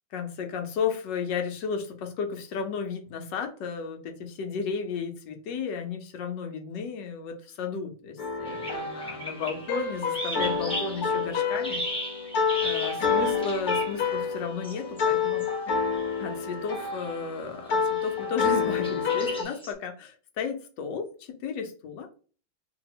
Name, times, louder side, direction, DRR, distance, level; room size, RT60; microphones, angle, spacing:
voice 1, 0.1-11.8 12.6-15.5 16.2-22.1, left 6 dB, 80° left, 5 dB, 1.4 m, -33 dB
sound 1, 8.2-19.4, left 5 dB, 65° left, 1.2 m, -28 dB
sound 2, 8.5-14.1 14.6-15.1 15.4-15.5 15.9-16.1 16.8-17.1 17.8-18.1 18.8-19.7, equal, 5° left, 0.4 m, -36 dB
2.9 x 2.7 x 4.0 m, 0.39 s
omnidirectional pair, 1.9 m